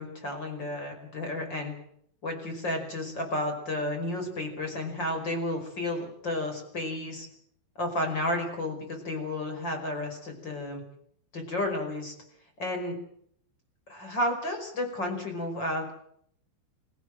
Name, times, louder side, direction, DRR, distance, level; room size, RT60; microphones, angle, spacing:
voice 1, 0.0-1.7 2.2-7.3 7.8-10.8 11.3-12.1 12.6-13.0 13.9-15.9, left 1 dB, 20° left, 5 dB, 5.3 m, -32 dB
27.0 x 16.5 x 7.7 m, 0.67 s
omnidirectional pair, 5.8 m